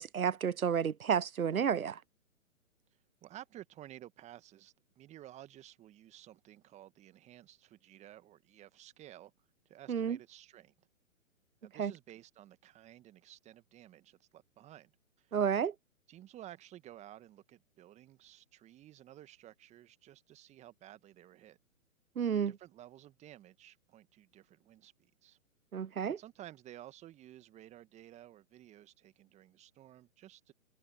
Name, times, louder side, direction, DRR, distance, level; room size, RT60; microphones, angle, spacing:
voice 1, 0.0-2.0 9.9-10.2 11.8-11.9 15.3-15.7 22.2-22.6 25.7-26.2, right 7 dB, 85° right, 0.7 m, -31 dB
voice 2, 3.2-9.3 9.6-10.7 11.6-14.9 15.2-15.4 16.1-21.6 22.3-25.4 25.8-25.9 26.2-30.5, right 13 dB, 15° right, 1.6 m, -54 dB
figure-of-eight pair, 125°, 41 cm